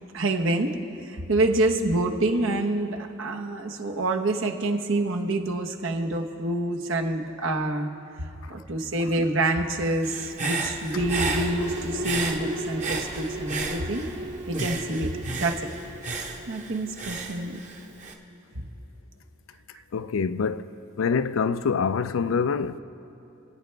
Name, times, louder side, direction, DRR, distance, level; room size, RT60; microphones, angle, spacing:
voice 1, 0.1-0.7 1.0-7.9 8.2-14.0 14.5-15.7 16.5-17.6 18.5-18.7, right 2 dB, 80° right, 1.1 m, -27 dB
Human voice / Breathing, 10.0-14.2 14.5-18.1, right 3 dB, 40° right, 1.0 m, -33 dB
sound 1, 10.9-18.0, right 1 dB, 60° right, 1.6 m, -36 dB
voice 2, 19.9-20.7 21.0-22.8, left 5 dB, 85° left, 0.4 m, -25 dB
27.5 x 9.2 x 3.4 m
head